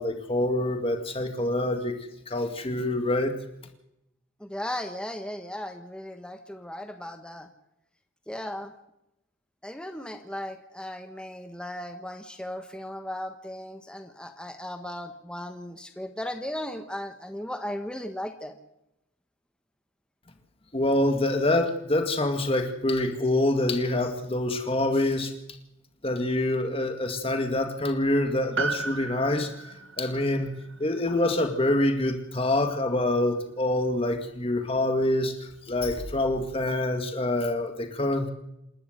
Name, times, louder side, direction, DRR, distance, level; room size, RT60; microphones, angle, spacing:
voice 1, 0.0-2.0 2.3-3.3 20.7-25.3 26.0-29.5 30.0-30.5 30.8-38.3, left 1 dB, 25° left, 6 dB, 2.0 m, -26 dB
voice 2, 4.4-7.5 8.3-8.7 9.6-18.6, left 1 dB, 5° left, 6 dB, 1.3 m, -36 dB
Piano, 28.6-33.2 33.4-33.5, right 4 dB, 65° right, 1.6 m, -36 dB
27.5 x 12.0 x 8.0 m, 0.86 s
head